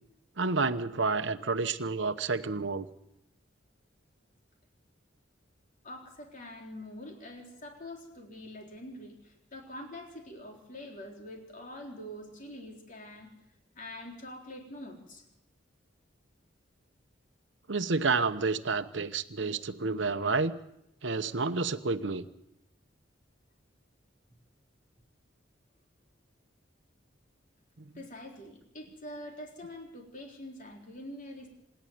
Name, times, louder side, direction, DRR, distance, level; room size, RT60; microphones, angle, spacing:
voice 1, 0.4-2.9 17.7-20.5 21.0-22.3, right 4 dB, 70° right, 9 dB, 1.0 m, -29 dB
voice 2, 5.8-13.3 13.8-15.2 27.9-31.5, left 1 dB, 45° left, 1 dB, 3.8 m, -45 dB
26.5 x 10.5 x 9.4 m, 0.81 s
head